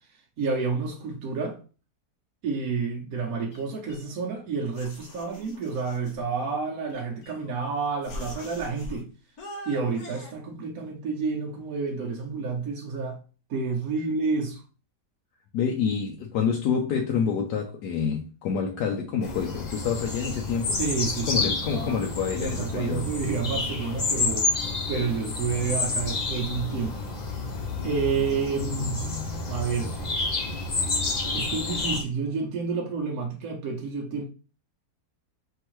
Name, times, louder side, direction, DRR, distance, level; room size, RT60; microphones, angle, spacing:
voice 1, 0.4-1.6 2.4-9.1 9.7-13.2 13.5-14.6 20.8-22.0 22.4-24.5 24.9-27.0 27.8-29.1 29.5-30.0 31.3-34.2, right 5 dB, 65° right, 1.2 m, -29 dB
sound 1, 3.5-4.4 4.7-6.2 6.9-7.6 8.0-9.0 9.4-10.3, left 1 dB, 65° left, 1.6 m, -43 dB
voice 2, 15.5-20.8 21.3-23.2, left 6 dB, 90° left, 1.2 m, -27 dB
sound 2, 19.2-32.0, left 3 dB, 40° left, 0.7 m, -29 dB
4.7 x 3.5 x 3.0 m
omnidirectional pair, 1.7 m